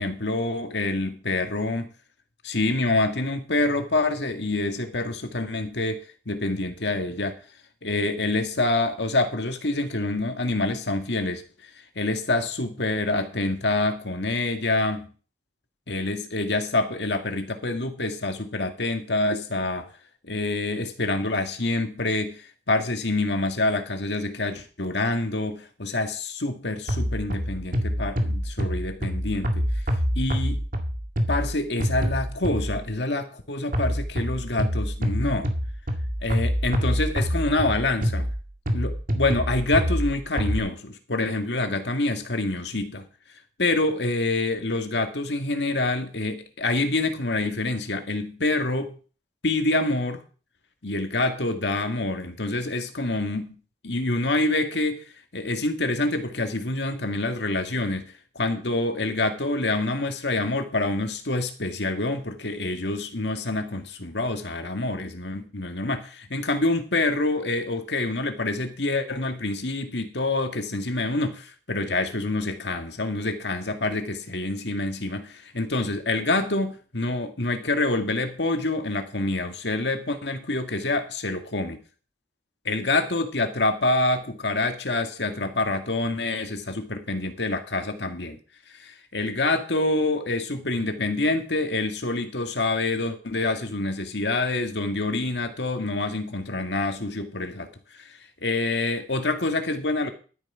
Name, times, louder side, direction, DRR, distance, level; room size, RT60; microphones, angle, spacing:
voice 1, 0.0-1.9 2.4-6.0 6.3-7.4 7.8-11.4 12.0-15.1 15.9-19.9 20.2-29.6 30.2-30.6 31.3-35.5 36.2-38.3 38.7-43.0 43.6-49.0 49.4-50.2 50.8-53.6 53.8-55.0 55.3-81.8 82.7-88.4 88.7-97.7 97.9-100.1, left 2 dB, 80° left, 6 dB, 1.9 m, -26 dB
sound 1, 26.9-32.9 33.7-40.6, equal, 50° right, 2.0 m, -27 dB
12.5 x 9.2 x 5.0 m, 0.38 s
head